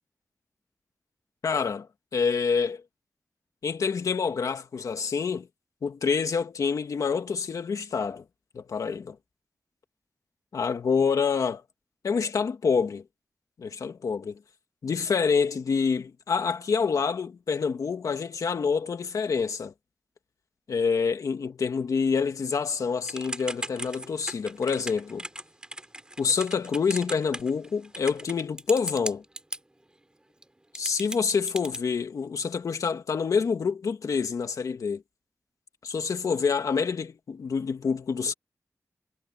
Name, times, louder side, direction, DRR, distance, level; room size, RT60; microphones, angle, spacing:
voice 1, 1.4-2.8 3.6-5.5 5.8-8.2 8.5-9.2 10.5-11.6 12.0-13.0 13.6-14.4 14.8-19.7 20.7-25.3 26.2-29.2 30.7-35.0 35.8-38.3, left 5 dB, 90° left, 2.2 m, -27 dB
Typing / Telephone, 23.1-29.6 30.4-30.5 30.7-31.8, right 1 dB, 15° right, 5.1 m, -37 dB
wide cardioid pair, 105°, 6 cm